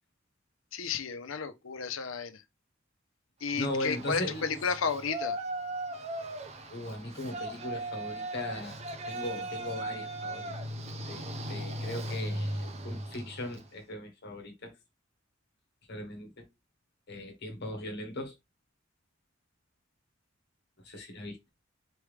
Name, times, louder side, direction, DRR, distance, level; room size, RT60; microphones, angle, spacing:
voice 1, 0.7-2.4 3.4-5.4, left 5 dB, 85° left, 0.7 m, -32 dB
voice 2, 3.5-4.6 6.7-10.5 11.1-14.7 15.9-16.5 17.1-18.3 20.8-21.5, left 1 dB, 55° left, 1.2 m, -39 dB
Yell, 3.5-13.7, right 1 dB, 35° right, 0.7 m, -38 dB
4.5 x 3.4 x 3.2 m
head